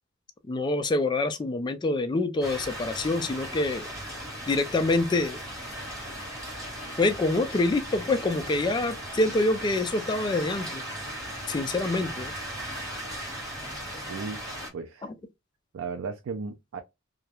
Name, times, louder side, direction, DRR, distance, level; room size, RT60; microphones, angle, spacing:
voice 1, 0.5-3.9 4.5-5.4 7.0-10.8 11.5-12.3, left 2 dB, 20° left, 0.3 m, -26 dB
sound 1, 2.4-14.7, equal, 15° right, 1.1 m, -37 dB
voice 2, 14.1-14.4 14.7-15.1 15.7-16.8, right 4 dB, 75° right, 0.3 m, -35 dB
2.2 x 2.0 x 2.9 m
head